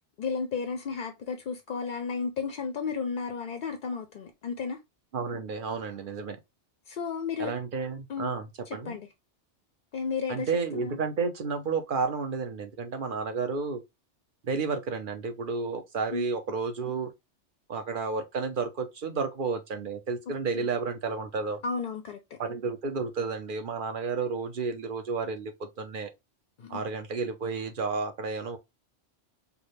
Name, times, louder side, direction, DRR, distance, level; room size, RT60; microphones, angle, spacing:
voice 1, 0.2-4.8 6.9-7.5 8.1-8.3 8.7-9.1 9.9-11.0 16.1-16.3 20.5-20.7 21.6-22.4 26.6-26.8, left 5 dB, 55° left, 0.6 m, -33 dB
voice 2, 5.1-6.4 7.4-9.0 10.3-13.8 14.4-17.1 17.7-21.6 22.4-26.1 26.7-28.6, right 4 dB, 50° right, 0.8 m, -31 dB
4.8 x 2.2 x 3.2 m
omnidirectional pair, 1.2 m